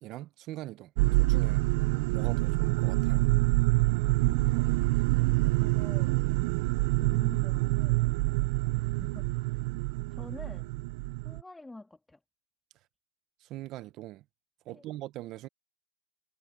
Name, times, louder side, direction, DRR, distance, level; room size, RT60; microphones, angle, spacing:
voice 1, 0.0-1.6 2.1-3.3 13.4-14.2 14.6-15.5, right 16 dB, 35° right, 1.0 m, -42 dB
sound 1, 1.0-11.4, right 23 dB, 50° right, 0.6 m, -26 dB
voice 2, 4.0-4.7 5.6-6.2 7.0-9.6 10.1-10.7 11.2-12.2 14.7-14.8, left 2 dB, 5° left, 2.3 m, -48 dB
supercardioid pair, 145°, 0 cm